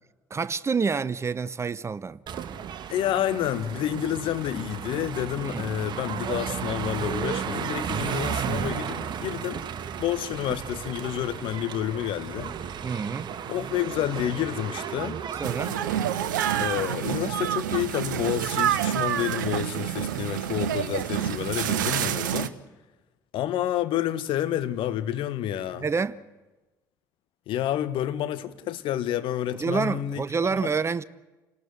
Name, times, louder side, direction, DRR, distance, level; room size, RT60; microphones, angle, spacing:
voice 1, 0.3-2.2 5.4-5.7 12.8-13.3 15.4-15.8 25.8-26.2 29.6-31.0, right 5 dB, 25° right, 0.8 m, -28 dB
sound 1, 2.3-16.9, right 8 dB, 45° right, 1.4 m, -34 dB
voice 2, 2.9-9.6 10.0-12.5 13.5-15.2 16.6-22.5 23.3-25.8 27.5-30.2 30.6-30.7, left 11 dB, 55° left, 1.4 m, -29 dB
sound 2, 15.4-22.5, right 10 dB, 75° right, 0.9 m, -28 dB
29.0 x 19.0 x 8.2 m
figure-of-eight pair, 50°, 11 cm